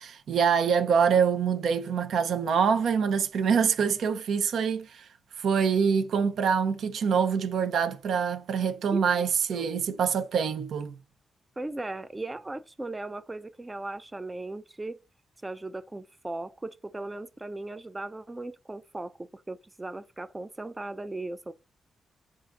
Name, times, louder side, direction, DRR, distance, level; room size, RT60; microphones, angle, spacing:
voice 1, 0.0-5.0 5.4-10.9, right 6 dB, 75° right, 0.5 m, -25 dB
voice 2, 11.6-15.0 15.4-21.5, right 2 dB, 25° right, 0.4 m, -37 dB
3.8 x 2.4 x 3.7 m
supercardioid pair, 45°, 0 cm